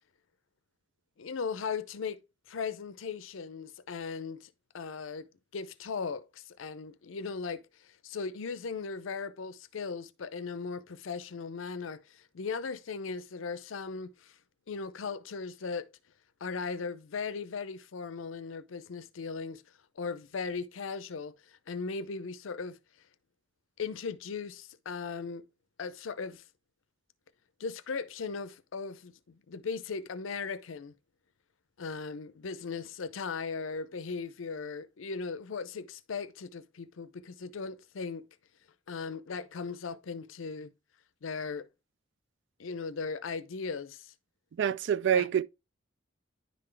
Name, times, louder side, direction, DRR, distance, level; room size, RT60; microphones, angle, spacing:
voice 1, 1.2-2.2 2.5-5.3 5.5-14.4 14.7-15.9 16.4-19.6 20.0-22.8 23.8-25.4 25.8-26.4 27.6-30.9 31.8-38.3 38.9-40.7 41.2-41.7 42.6-44.1 45.1-45.3, left 5 dB, 90° left, 0.5 m, -38 dB
voice 2, 44.6-45.4, right 8 dB, 65° right, 0.3 m, -26 dB
10.5 x 3.8 x 3.2 m
head